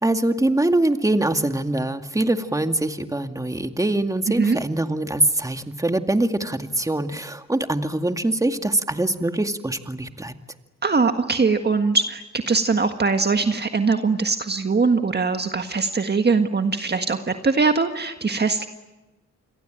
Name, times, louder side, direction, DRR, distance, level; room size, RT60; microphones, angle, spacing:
voice 1, 0.0-10.3, right 1 dB, 10° right, 7 dB, 2.2 m, -23 dB
voice 2, 10.8-18.7, right 4 dB, 35° right, 6 dB, 1.7 m, -21 dB
29.0 x 22.5 x 9.2 m, 1.1 s
cardioid pair, 70°, 29 cm